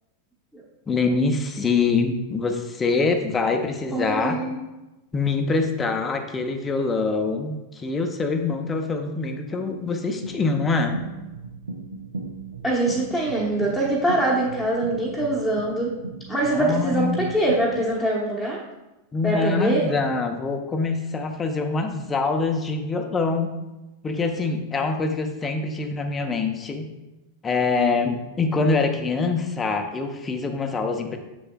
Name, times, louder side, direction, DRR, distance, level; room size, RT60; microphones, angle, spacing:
voice 1, 0.9-4.4 5.1-11.0 16.5-17.2 19.1-23.5 24.0-26.9 27.4-31.2, left 4 dB, 20° left, 5 dB, 0.6 m, -24 dB
voice 2, 3.9-4.6 9.5-9.8 12.6-15.9 16.3-18.6 19.2-19.8, right 1 dB, 5° right, -7 dB, 1.0 m, -23 dB
sound 1, 10.2-17.9, right 3 dB, 75° right, 0.7 m, -37 dB
6.9 x 6.5 x 2.2 m, 1.0 s
figure-of-eight pair, 90°, 0 cm